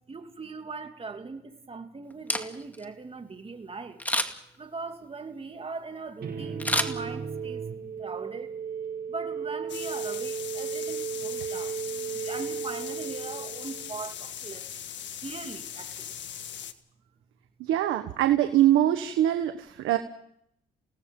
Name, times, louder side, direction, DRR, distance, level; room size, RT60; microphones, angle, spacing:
voice 1, 0.0-4.0 4.6-7.7 8.0-8.5 9.1-11.8 12.1-14.7 15.2-16.1, right 4 dB, 30° right, 2.8 m, -40 dB
Camera, 2.1-2.9 4.0-4.6 6.6-7.5 8.0-8.1, left 1 dB, 10° left, 2.3 m, -29 dB
sound 1, 6.2-14.1, right 6 dB, 55° right, 7.7 m, -35 dB
sound 2, 9.7-16.7, left 9 dB, 65° left, 1.7 m, -40 dB
voice 2, 17.6-20.0, right 12 dB, 90° right, 1.4 m, -23 dB
29.5 x 18.0 x 5.5 m
cardioid pair, 90°, 20 cm